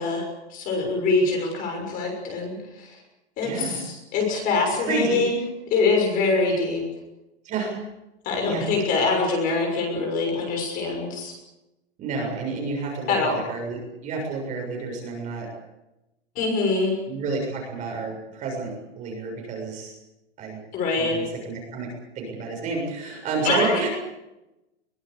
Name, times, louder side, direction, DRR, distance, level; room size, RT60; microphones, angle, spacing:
voice 1, 0.0-3.0 3.4-5.4 5.7-6.8 8.2-11.3 13.1-13.4 16.3-16.9 20.7-21.2 23.4-23.8, left 3 dB, 25° left, 2 dB, 6.5 m, -24 dB
voice 2, 3.4-3.8 4.9-5.2 7.4-7.8 8.5-8.7 12.0-15.5 17.1-19.9 20.4-20.6 20.9-21.9 22.2-23.9, right 4 dB, 20° right, 0 dB, 7.1 m, -30 dB
23.0 x 19.0 x 8.4 m, 0.95 s
hypercardioid pair, 165°, 34 cm